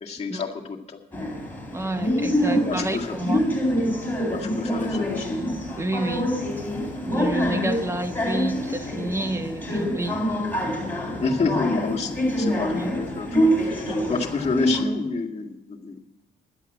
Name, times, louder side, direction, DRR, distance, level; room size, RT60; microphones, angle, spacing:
voice 1, 0.0-1.0 2.5-3.2 4.3-5.4 11.2-13.3 13.6-16.0, left 4 dB, 30° left, -1 dB, 2.0 m, -28 dB
sound 1, 1.1-14.8, equal, 10° left, 3.7 m, -26 dB
voice 2, 1.7-3.4 5.7-6.3 7.1-10.4 12.7-12.9, right 2 dB, 15° right, 10 dB, 0.9 m, -29 dB
11.0 x 8.2 x 7.9 m, 0.84 s
cardioid pair, 90°, 20 cm